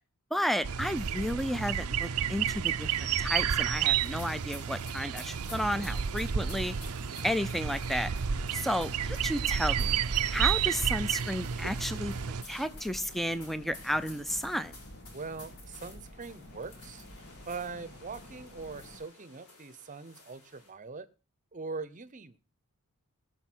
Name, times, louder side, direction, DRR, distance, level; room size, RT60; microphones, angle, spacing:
voice 1, 0.3-2.9 3.2-6.8 7.2-8.1 8.5-10.0 10.3-12.1 12.5-14.7, equal, ahead, 0.6 m, -32 dB
sound 1, 0.6-12.4, right 8 dB, 80° right, 0.6 m, -31 dB
sound 2, 4.0-20.7, left 3 dB, 75° left, 3.7 m, -53 dB
sound 3, 6.5-19.0, left 1 dB, 50° left, 1.7 m, -50 dB
voice 2, 15.1-17.1 17.5-21.1 21.5-22.4, right 4 dB, 35° right, 0.8 m, -42 dB
18.0 x 6.6 x 6.1 m
head